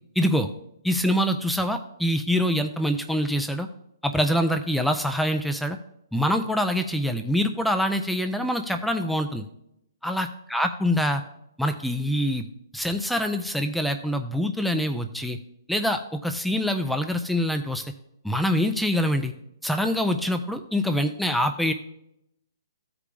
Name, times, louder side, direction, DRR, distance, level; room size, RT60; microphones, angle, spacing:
voice 1, 0.2-0.5 0.8-3.7 4.0-5.8 6.1-9.4 10.0-11.2 11.6-12.5 12.7-15.4 15.7-17.8 18.2-19.3 19.6-21.7, equal, ahead, 6 dB, 0.4 m, -25 dB
13.5 x 5.0 x 3.4 m, 0.79 s
hypercardioid pair, 145°, 2 cm